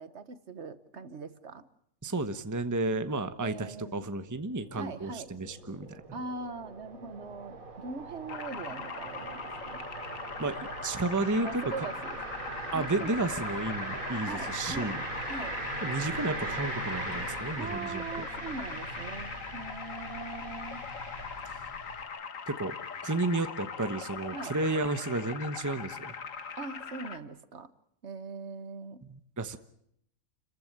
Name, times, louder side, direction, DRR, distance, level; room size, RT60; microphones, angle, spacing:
voice 1, 0.0-1.7 3.4-4.0 4.8-5.3 6.1-9.8 11.4-12.2 12.7-13.1 14.2-14.9 15.3-15.6 17.6-20.8 24.3-24.5 26.5-27.7 28.0-29.0, right 4 dB, 55° right, 13 dB, 1.5 m, -41 dB
voice 2, 2.0-6.0 10.4-11.5 11.8-11.9 12.7-15.0 15.8-18.2 22.5-22.8 23.0-26.1 29.1-29.6, right 2 dB, 15° right, 9 dB, 1.0 m, -32 dB
sound 1, 4.4-22.0, right 2 dB, 75° right, 4.7 m, -40 dB
sound 2, 8.3-27.2, left 6 dB, 65° left, 1.6 m, -41 dB
29.0 x 15.0 x 9.2 m, 0.73 s
omnidirectional pair, 1.5 m